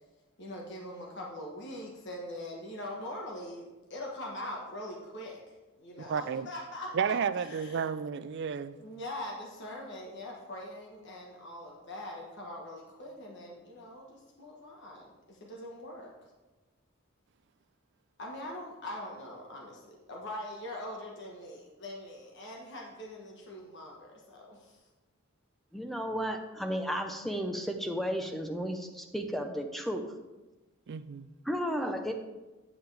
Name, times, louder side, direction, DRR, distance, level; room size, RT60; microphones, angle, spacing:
voice 1, 0.4-7.9 8.8-16.1 18.2-24.9, left 1 dB, 55° left, 1.3 m, -42 dB
voice 2, 6.1-6.5 6.9-8.8 30.9-31.3, right 6 dB, 55° right, 0.4 m, -32 dB
voice 3, 25.7-30.1 31.4-32.1, equal, ahead, 0.7 m, -33 dB
8.6 x 7.9 x 3.4 m
head